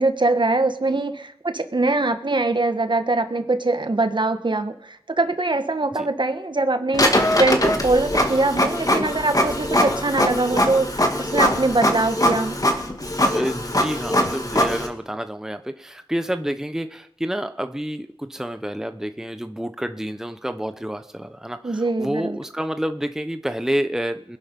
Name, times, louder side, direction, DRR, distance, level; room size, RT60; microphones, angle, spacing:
voice 1, 0.0-7.1 7.4-12.6 21.6-22.4, right 2 dB, 50° right, 8 dB, 1.5 m, -22 dB
Printer, 6.9-14.9, left 1 dB, 35° left, 2.4 m, -22 dB
voice 2, 13.3-24.4, equal, 5° right, 9 dB, 1.0 m, -29 dB
20.5 x 11.0 x 5.4 m, 0.72 s
cardioid pair, 40°, 10 cm